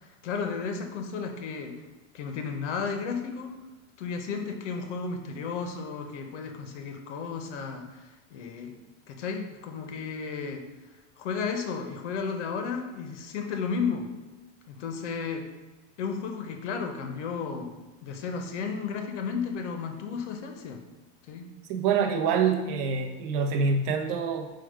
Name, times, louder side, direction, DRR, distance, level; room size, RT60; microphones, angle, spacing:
voice 1, 0.0-1.8 2.1-3.5 4.0-8.8 9.1-10.6 11.2-14.1 14.7-15.5 16.0-17.7 18.0-20.8 21.3-21.4, left 5 dB, 85° left, 4 dB, 0.8 m, -33 dB
voice 2, 21.7-24.5, right 5 dB, 50° right, 4 dB, 0.7 m, -26 dB
4.7 x 2.2 x 4.6 m, 1.2 s
supercardioid pair, 150°, 35 cm